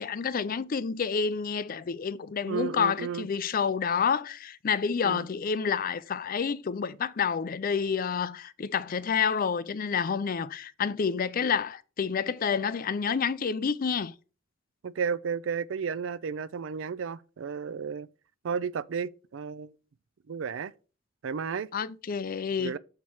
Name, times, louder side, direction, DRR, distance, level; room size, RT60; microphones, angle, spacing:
voice 1, 0.0-14.1 21.7-22.8, left 6 dB, 50° left, 0.4 m, -29 dB
voice 2, 2.5-3.3 5.0-5.3 14.8-18.1 18.4-19.8 20.3-20.7 21.2-21.7 22.6-22.8, right 6 dB, 85° right, 0.4 m, -33 dB
7.0 x 4.5 x 4.6 m
head